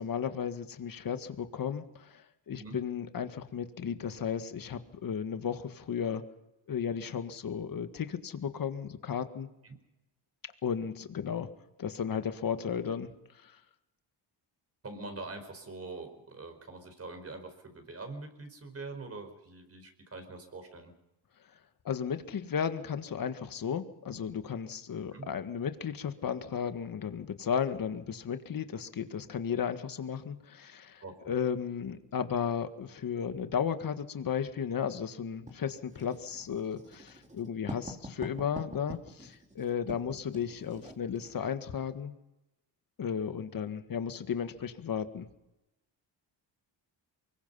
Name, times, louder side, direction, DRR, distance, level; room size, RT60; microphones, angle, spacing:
voice 1, 0.0-6.2 6.7-9.5 10.6-11.5 11.8-13.1 13.4-13.5 21.9-42.1 43.0-45.3, left 7 dB, 50° left, 9 dB, 1.8 m, -34 dB
voice 2, 14.8-20.9 25.1-25.3 31.0-31.3, right 3 dB, 35° right, 7 dB, 5.0 m, -44 dB
Writing, 35.5-41.4, equal, 15° right, 3.3 m, -45 dB
24.0 x 22.0 x 5.6 m, 0.94 s
cardioid pair, 115°, 44 cm